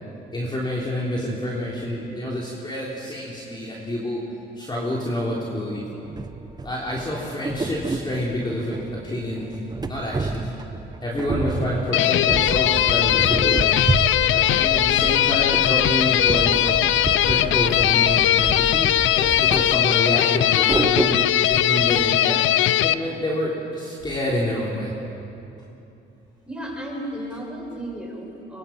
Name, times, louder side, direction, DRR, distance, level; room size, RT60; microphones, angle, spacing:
voice 1, 0.3-4.2 4.6-5.8 6.6-9.6 9.9-10.5 11.0-13.9 14.3-16.8 17.2-22.4 22.8-24.9, left 1 dB, 20° left, -4 dB, 3.7 m, -28 dB
sound 1, 6.0-22.1, right 3 dB, 20° right, 1.0 m, -30 dB
sound 2, 11.9-22.9, left 12 dB, 80° left, 0.6 m, -19 dB
voice 2, 26.5-28.6, right 1 dB, 5° right, -2 dB, 6.6 m, -34 dB
24.5 x 22.0 x 6.0 m, 2.9 s
cardioid pair, 90°, 20 cm